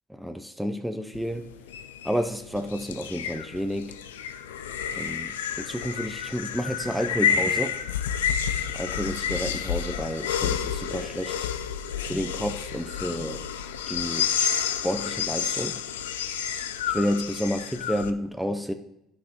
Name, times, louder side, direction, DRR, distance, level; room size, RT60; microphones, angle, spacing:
voice 1, 0.1-1.5 2.0-4.0 5.0-7.8 8.7-11.5 12.0-13.5 13.9-14.5 14.8-15.8 16.9-18.7, equal, ahead, 7 dB, 0.6 m, -30 dB
sound 1, 1.1-18.1, left 8 dB, 90° left, 0.3 m, -30 dB
11.5 x 6.2 x 2.9 m, 0.83 s
hypercardioid pair, 65°, 0 cm